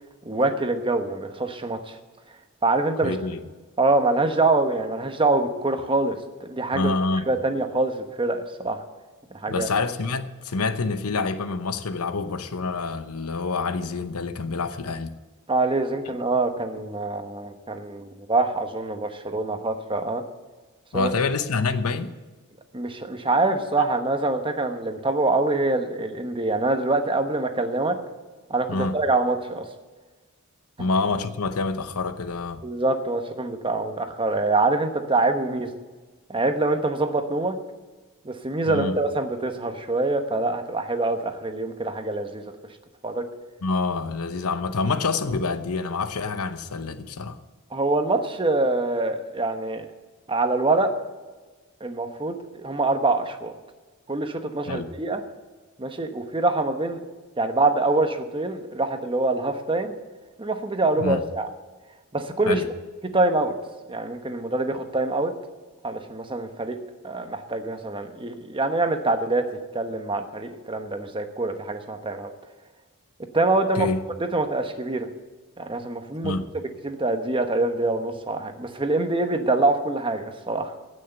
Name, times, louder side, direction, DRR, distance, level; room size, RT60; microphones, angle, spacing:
voice 1, 0.2-2.0 2.6-3.1 3.8-6.9 7.3-8.8 9.3-9.7 15.5-20.2 20.9-21.1 22.7-28.0 28.5-29.7 30.8-30.9 32.6-35.7 36.3-37.6 38.2-42.5 43.0-43.3 47.7-49.8 50.3-50.9 51.8-53.5 54.1-55.2 55.8-57.0 57.4-59.9 60.4-61.5 62.1-62.6 63.1-63.5 63.9-65.3 65.8-66.8 67.0-69.5 69.7-72.3 73.3-73.9 74.3-75.1 75.6-76.4 76.8-80.7, right 2 dB, 25° right, 7 dB, 1.1 m, -25 dB
voice 2, 3.0-3.4 6.7-7.3 9.5-15.1 20.9-22.1 28.7-29.0 30.8-32.6 38.7-39.0 43.6-47.4 54.7-54.9 61.0-61.2 62.5-62.7 73.7-74.0 76.2-76.5, left 3 dB, 85° left, 11 dB, 0.8 m, -27 dB
16.0 x 6.4 x 7.8 m, 1.3 s
head